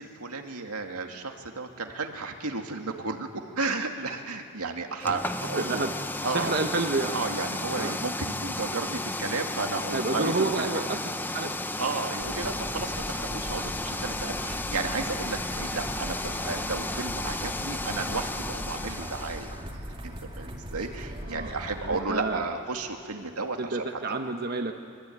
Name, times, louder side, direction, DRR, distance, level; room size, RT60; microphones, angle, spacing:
voice 1, 0.0-5.8 6.2-6.5 7.1-10.8 11.8-23.8 24.1-24.2, right 3 dB, 85° right, 3 dB, 2.3 m, -33 dB
sound 1, 5.0-19.6, left 2 dB, 10° left, 0.6 m, -33 dB
voice 2, 5.5-5.9 6.3-7.1 7.7-8.0 9.9-11.0 11.2-11.5 12.4-12.6 21.3-22.4 23.6-24.7, right 3 dB, 45° right, 4 dB, 1.1 m, -29 dB
sound 2, 12.2-22.0, equal, 25° right, 2.6 m, -39 dB
24.5 x 23.5 x 9.3 m, 2.3 s
head